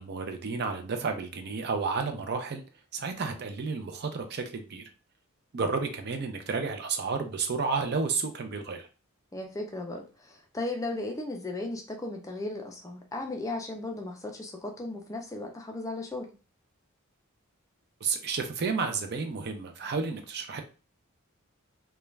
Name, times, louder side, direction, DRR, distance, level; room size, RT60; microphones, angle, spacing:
voice 1, 0.0-2.6 2.9-4.8 5.5-8.9 18.0-20.6, right 4 dB, 50° right, 6 dB, 0.4 m, -31 dB
voice 2, 9.3-16.3, left 2 dB, 15° left, 3 dB, 0.4 m, -36 dB
2.4 x 2.1 x 3.1 m, 0.35 s
head